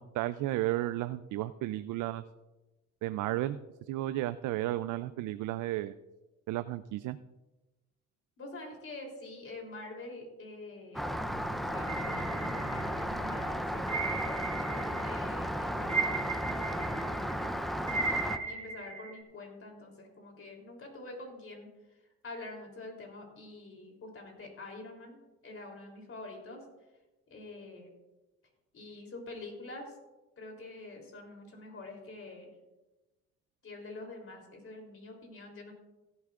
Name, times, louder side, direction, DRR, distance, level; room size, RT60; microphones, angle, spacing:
voice 1, 0.0-2.2 3.0-3.6 3.9-5.9 6.5-7.2, right 15 dB, 85° right, 12 dB, 0.5 m, -33 dB
voice 2, 8.4-11.0 11.6-17.4 17.9-25.2 25.4-26.6 27.3-27.9 28.7-30.0 30.4-32.5 33.6-35.7, left 2 dB, 45° left, 1 dB, 3.4 m, -46 dB
Rain, 10.9-18.4, equal, ahead, 0.6 m, -34 dB
sound 1, 11.9-13.2 13.9-15.2 15.5-19.2, right 4 dB, 20° right, 1.8 m, -36 dB
16.5 x 11.5 x 2.5 m, 1.1 s
cardioid pair, 90°, 30 cm